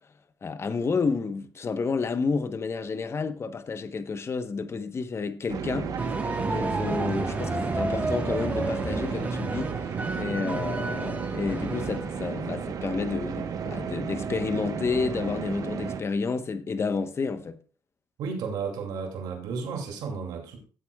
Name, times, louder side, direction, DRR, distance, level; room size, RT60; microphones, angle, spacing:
voice 1, 0.4-9.7 10.2-17.6, left 4 dB, 40° left, 1.0 m, -30 dB
sound 1, 5.5-16.0, right 6 dB, 60° right, 1.1 m, -33 dB
sound 2, 6.0-12.4, right 2 dB, 20° right, 1.3 m, -32 dB
voice 2, 18.2-20.6, right 5 dB, 85° right, 2.6 m, -33 dB
15.5 x 8.2 x 2.3 m
cardioid pair, 80°, 7 cm